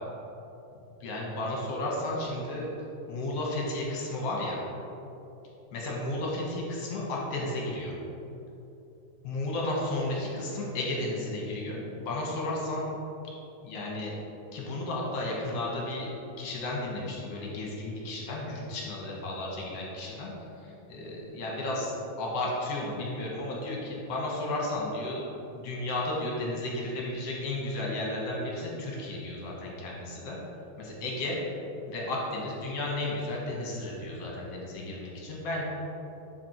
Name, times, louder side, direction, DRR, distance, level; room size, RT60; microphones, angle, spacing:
voice 1, 0.7-2.7 3.1-4.6 5.7-7.9 9.2-12.9 13.6-14.1 14.5-16.1 16.4-20.3 20.6-25.2 25.5-30.4 30.8-31.4 31.9-35.6, left 1 dB, 60° left, -3 dB, 2.1 m, -33 dB
7.5 x 6.1 x 4.4 m, 2.9 s
omnidirectional pair, 3.6 m